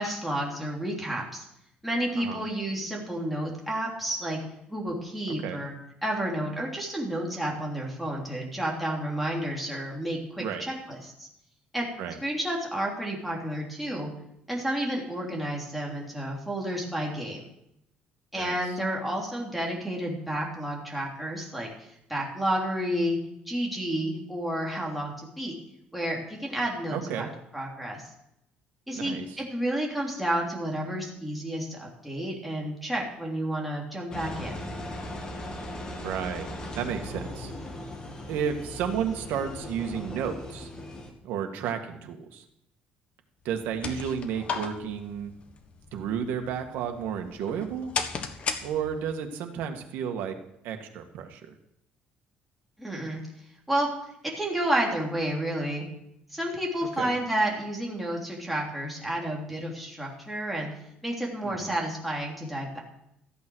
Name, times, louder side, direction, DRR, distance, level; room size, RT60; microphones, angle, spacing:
voice 1, 0.0-1.4 1.8-4.4 4.7-5.7 6.0-11.3 11.7-11.9 12.2-14.1 14.5-17.4 18.3-23.2 23.5-25.5 25.9-27.3 27.5-28.1 28.9-34.7 52.8-53.2 53.7-53.9 54.4-55.8 56.3-60.7 61.0-62.8, right 1 dB, ahead, -3 dB, 3.2 m, -31 dB
voice 2, 26.9-27.3 28.9-29.3 36.0-36.5 36.8-37.5 38.3-40.7 41.2-42.4 43.5-45.3 45.9-47.9 48.6-50.4 50.6-51.5 57.0-57.1 61.4-61.7, right 8 dB, 80° right, 5 dB, 1.8 m, -32 dB
Engine, 34.1-41.1, left 1 dB, 25° left, 2.2 m, -38 dB
sound 1, 43.5-49.2, left 5 dB, 40° left, 1.5 m, -36 dB
14.0 x 8.7 x 6.4 m, 0.80 s
cardioid pair, 140°, 3 cm